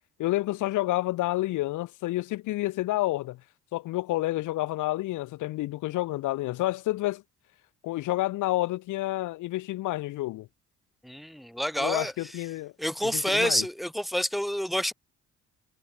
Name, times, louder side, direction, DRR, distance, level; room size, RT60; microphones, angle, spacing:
voice 1, 0.2-3.4 3.7-7.2 7.8-10.5 11.8-12.7 13.0-13.6, left 17 dB, 80° left, 0.7 m, -29 dB
voice 2, 11.0-12.4 12.8-14.9, equal, ahead, 1.1 m, -28 dB
cardioid pair, 90°, 30 cm